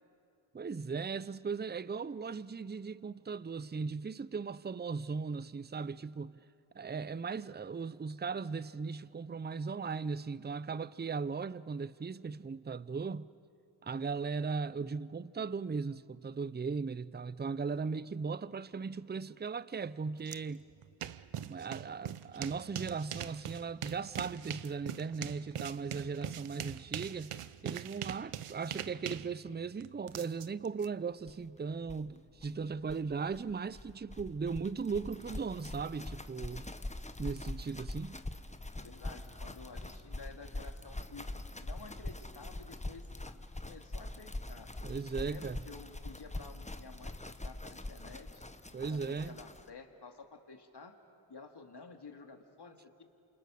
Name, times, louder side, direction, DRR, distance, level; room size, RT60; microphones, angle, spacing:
voice 1, 0.5-6.4 6.7-13.3 13.8-20.6 21.4-27.4 27.6-36.7 37.2-38.2 44.8-45.6 48.7-49.4, right 5 dB, 20° right, 0.5 m, -38 dB
sound 1, 20.3-20.4 20.7-30.9, right 10 dB, 85° right, 0.8 m, -42 dB
sound 2, 31.3-31.4 31.6-31.7 31.8-49.7, left 2 dB, 15° left, 1.1 m, -43 dB
voice 2, 38.8-41.3 41.6-44.7 45.3-48.4 48.9-51.0 51.3-53.0, left 4 dB, 50° left, 2.3 m, -52 dB
28.0 x 27.5 x 6.5 m
cardioid pair, 55°, 50 cm